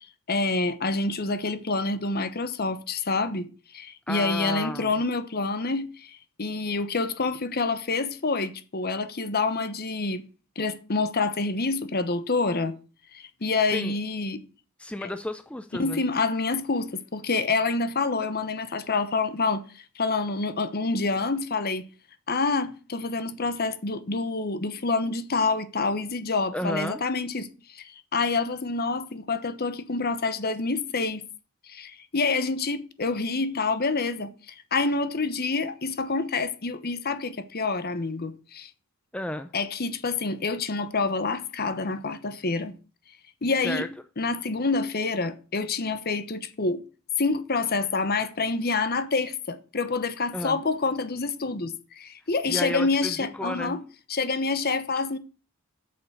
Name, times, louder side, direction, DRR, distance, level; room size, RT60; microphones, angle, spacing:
voice 1, 0.3-3.5 3.7-10.2 10.6-12.7 13.1-14.4 15.0-15.1 15.8-21.8 22.3-31.2 31.7-38.7 39.5-42.7 43.4-43.9 44.2-46.8 47.2-53.8 54.1-55.2, left 3 dB, 45° left, 1.1 m, -27 dB
voice 2, 4.1-5.0 13.7-13.9 14.8-16.0 26.5-27.0 39.1-39.5 43.6-43.9 50.3-50.6 52.4-53.8, left 1 dB, 5° left, 0.5 m, -32 dB
8.6 x 6.9 x 7.1 m
head